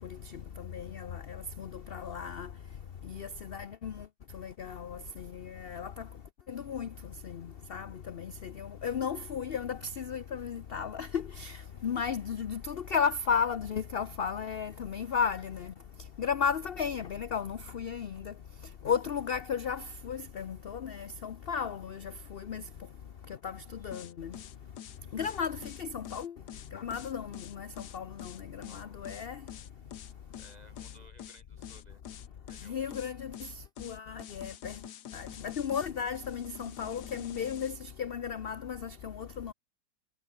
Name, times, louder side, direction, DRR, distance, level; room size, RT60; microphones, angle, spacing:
voice 1, 0.7-2.5 3.1-3.9 4.3-5.9 6.5-6.9 7.2-11.6 11.8-15.7 16.2-18.3 18.8-22.0 22.3-22.6 23.4-23.6 23.8-24.3 25.1-26.3 26.7-27.7 27.9-28.3 28.7-29.4 32.7-33.3 33.8-34.7 35.1-39.5, left 7 dB, 50° left, 0.7 m, -34 dB
sound 1, 23.9-37.8, left 10 dB, 75° left, 1.6 m, -47 dB
voice 2, 28.6-29.3 30.4-32.0 32.5-33.0, right 1 dB, 25° right, 3.6 m, -59 dB
omnidirectional pair, 1.8 m